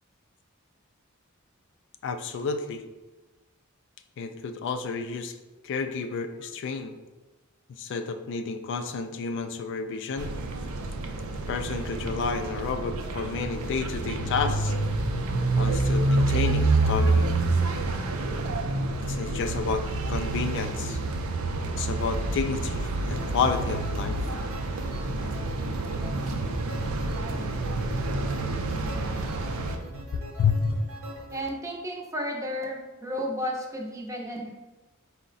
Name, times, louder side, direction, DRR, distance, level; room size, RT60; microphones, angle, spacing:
voice 1, 2.0-2.8 4.2-5.3 5.6-6.9 7.7-10.3 11.5-14.7 15.5-17.3 19.1-21.0 21.8-24.2 30.1-30.8, left 5 dB, 60° left, 8 dB, 0.3 m, -30 dB
sound 1, 10.2-29.8, right 2 dB, 90° right, 0.4 m, -28 dB
sound 2, 22.9-31.5, equal, 65° right, 0.8 m, -42 dB
voice 2, 31.3-34.5, equal, 15° right, -1 dB, 0.5 m, -33 dB
4.6 x 2.1 x 3.9 m, 1.1 s
head